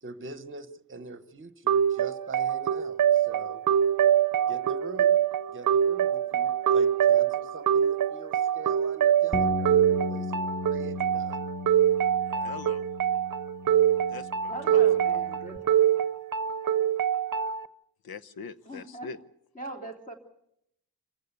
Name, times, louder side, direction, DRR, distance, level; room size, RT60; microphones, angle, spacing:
voice 1, 0.0-3.6 4.5-5.2 5.5-11.5, right 3 dB, 35° right, 13 dB, 1.1 m, -43 dB
sound 1, 1.7-17.7, right 9 dB, 60° right, 0.8 m, -24 dB
sound 2, 9.3-15.6, left 3 dB, ahead, 0.9 m, -36 dB
voice 2, 12.3-12.9 14.1-15.0 18.0-19.2, left 5 dB, 80° left, 14 dB, 0.9 m, -43 dB
voice 3, 14.5-15.9 18.7-19.1 19.5-20.1, right 2 dB, 20° left, 2 dB, 3.1 m, -41 dB
27.0 x 15.5 x 8.3 m, 0.78 s
wide cardioid pair, 175°, 36 cm